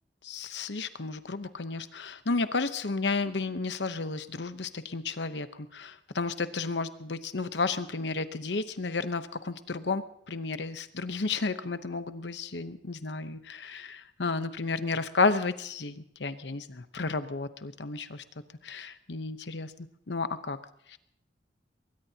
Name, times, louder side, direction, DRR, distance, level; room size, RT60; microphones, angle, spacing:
voice 1, 0.2-18.2 18.6-19.7 20.1-20.6 20.9-21.0, left 3 dB, 70° left, 11 dB, 0.9 m, -32 dB
22.0 x 19.5 x 2.9 m, 0.74 s
head